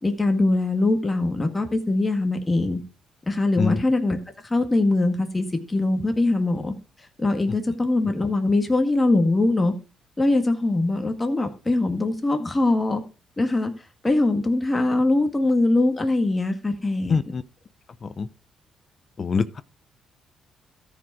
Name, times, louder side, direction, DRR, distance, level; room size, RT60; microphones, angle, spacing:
voice 1, 0.0-2.8 3.3-4.2 4.5-6.7 7.2-9.7 10.2-13.0 13.4-13.7 14.0-17.2, left 2 dB, 20° left, 1.8 m, -22 dB
voice 2, 17.1-17.4 18.0-18.3 19.2-19.6, left 5 dB, 40° left, 0.6 m, -24 dB
13.5 x 5.0 x 4.8 m
cardioid pair, 90°, 0 cm